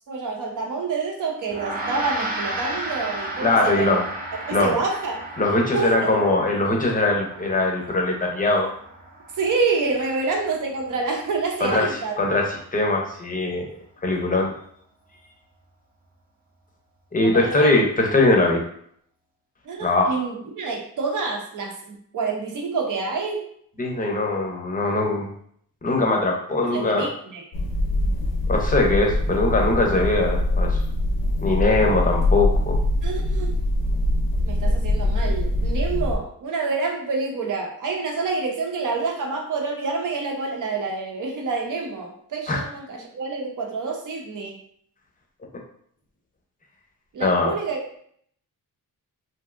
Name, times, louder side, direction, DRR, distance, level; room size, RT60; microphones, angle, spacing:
voice 1, 0.1-4.0 4.5-5.2 5.7-6.1 9.3-12.2 17.2-17.7 19.6-23.5 26.7-27.4 33.0-33.6 34.4-44.6 47.1-48.0, right 4 dB, 65° right, 1 dB, 0.7 m, -27 dB
Gong, 1.5-11.1, right 1 dB, 25° right, 0.6 m, -34 dB
voice 2, 3.4-4.0 4.5-4.8 5.4-8.7 11.6-13.7 14.0-14.5 17.1-18.6 19.8-20.2 23.8-25.3 25.8-27.0 28.5-30.8 31.4-32.8 34.6-34.7 42.5-42.6 47.2-47.5, left 2 dB, 25° left, 0 dB, 0.6 m, -21 dB
sound 1, 27.5-36.2, left 1 dB, 85° left, 0.7 m, -23 dB
3.2 x 2.6 x 2.4 m, 0.64 s
wide cardioid pair, 150°, 34 cm